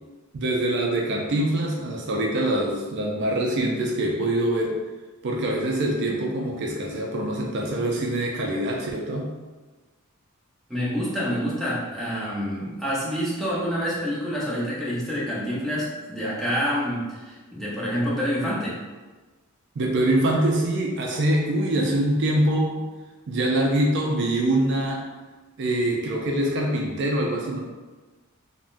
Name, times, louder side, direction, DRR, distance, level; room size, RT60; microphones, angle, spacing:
voice 1, 0.3-4.8 5.2-9.3 19.8-22.8 23.3-25.1 25.6-27.6, right 1 dB, 55° right, -1 dB, 0.4 m, -24 dB
voice 2, 10.7-18.8, equal, ahead, -9 dB, 0.7 m, -27 dB
3.5 x 2.1 x 2.5 m, 1.3 s
head